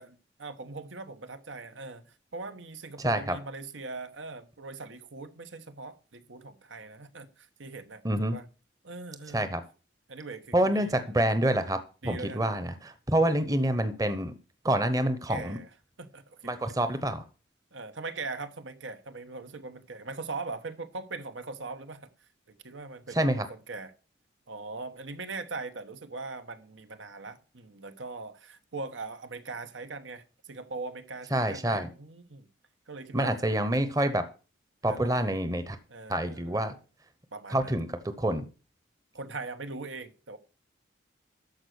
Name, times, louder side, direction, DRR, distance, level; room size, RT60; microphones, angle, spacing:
voice 1, 0.0-8.5 8.8-9.4 10.1-11.1 12.0-12.4 13.2-13.3 15.3-15.7 16.0-16.5 17.7-22.1 22.5-23.9 24.5-32.5 32.9-33.5 34.9-35.3 35.9-36.6 37.3-37.7 39.1-40.4, right 3 dB, 80° right, 1.1 m, -41 dB
voice 2, 3.0-3.4 8.0-8.4 9.3-9.6 10.5-14.3 14.6-15.6 16.4-17.2 23.1-23.4 31.3-31.9 33.1-34.2 34.8-35.8 36.1-36.7 37.5-37.9 38.2-38.5, right 1 dB, 20° right, 0.9 m, -27 dB
13.5 x 5.1 x 6.3 m
head